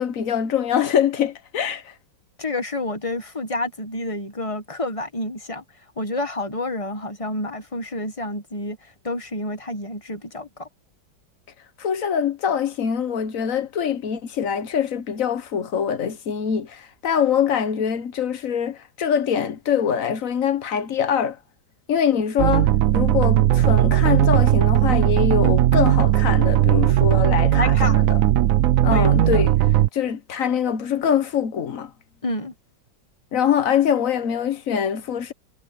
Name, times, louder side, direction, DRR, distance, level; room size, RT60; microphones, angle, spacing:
voice 1, 0.0-1.9 11.8-21.4 21.9-28.2 28.8-29.5 29.9-31.9 33.3-35.3, left 8 dB, 55° left, 1.3 m, -23 dB
voice 2, 2.4-5.6 6.0-8.8 9.0-10.7 27.5-28.0 28.9-29.4 32.2-32.5, left 1 dB, 20° left, 1.3 m, -29 dB
sound 1, 22.4-29.9, right 13 dB, 65° right, 0.8 m, -17 dB
omnidirectional pair, 1.9 m